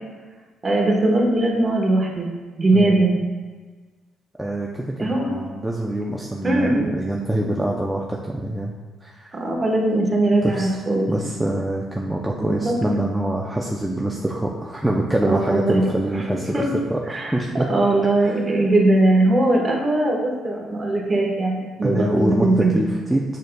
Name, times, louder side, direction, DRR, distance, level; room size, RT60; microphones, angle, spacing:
voice 1, 0.6-2.3 2.6-3.2 5.0-5.3 6.4-6.9 9.3-11.1 12.4-12.8 15.3-15.8 16.1-16.2 16.5-16.6 17.1-17.4 17.7-22.7, right 2 dB, 25° right, -1 dB, 1.2 m, -20 dB
voice 2, 2.7-3.0 4.4-4.8 5.3-8.7 9.0-9.4 10.4-10.7 11.1-16.6 16.9-17.7 18.2-18.4 21.8-23.2, right 1 dB, 5° right, -2 dB, 0.5 m, -25 dB
6.5 x 6.5 x 2.2 m, 1.4 s
cardioid pair, 115°, 0 cm